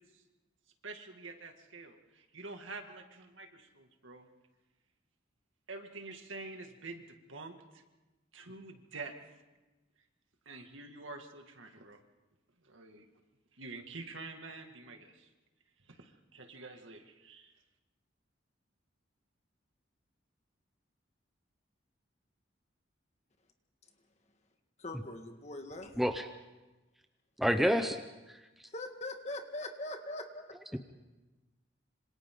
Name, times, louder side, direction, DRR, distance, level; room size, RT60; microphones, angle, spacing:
voice 1, 0.8-4.3 5.7-7.8 8.3-9.1 10.5-12.0 12.6-13.1 13.6-15.3 15.9-17.5, right 3 dB, 85° right, 5 dB, 2.1 m, -47 dB
voice 2, 24.8-25.9 28.7-30.6, left 2 dB, 35° left, 5 dB, 1.8 m, -41 dB
voice 3, 27.4-28.0 30.7-30.8, equal, ahead, 6 dB, 0.7 m, -28 dB
26.5 x 25.5 x 3.8 m, 1.1 s
head